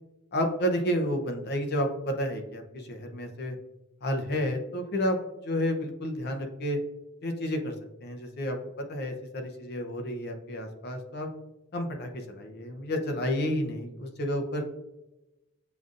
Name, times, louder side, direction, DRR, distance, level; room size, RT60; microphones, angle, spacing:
voice 1, 0.3-3.6 4.0-6.8 7.2-7.7 8.0-8.6 8.9-11.3 11.7-14.6, equal, 50° left, 4 dB, 0.6 m, -30 dB
6.9 x 2.5 x 2.4 m, 0.96 s
head